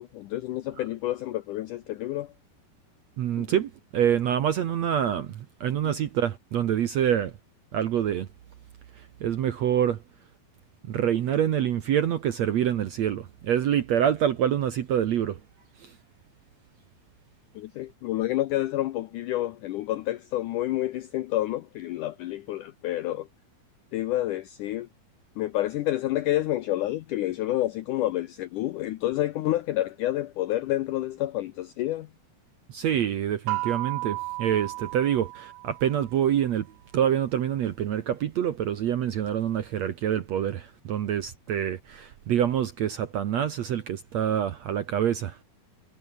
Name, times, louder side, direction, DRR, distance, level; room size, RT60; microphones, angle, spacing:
voice 1, 0.0-2.3 3.4-3.5 17.6-23.3 23.9-24.9 25.4-32.1, left 15 dB, 80° left, 1.8 m, -29 dB
voice 2, 3.2-7.3 7.7-8.3 9.0-10.0 10.9-15.4 15.8-15.9 32.7-36.7 36.9-45.4, right 10 dB, 65° right, 1.8 m, -26 dB
sound 1, 33.5-36.2, right 21 dB, 90° right, 2.7 m, -33 dB
omnidirectional pair, 4.5 m